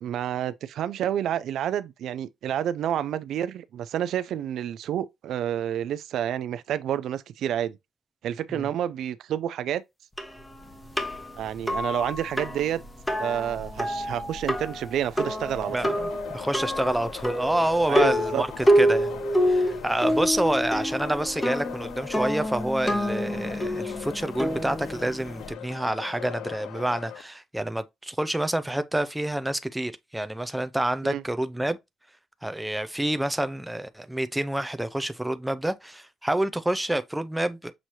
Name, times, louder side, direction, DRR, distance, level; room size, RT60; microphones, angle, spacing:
voice 1, 0.0-7.8 8.2-9.8 11.4-12.8 13.2-15.9 17.9-18.4 31.0-31.2, right 10 dB, 75° right, 0.4 m, -29 dB
sound 1, 10.2-25.5, equal, 10° left, 1.0 m, -27 dB
sound 2, 15.2-27.2, left 10 dB, 85° left, 0.4 m, -41 dB
voice 2, 15.7-31.8 32.4-37.7, right 1 dB, 5° right, 0.5 m, -28 dB
6.2 x 2.7 x 2.9 m
cardioid pair, 90°, 0 cm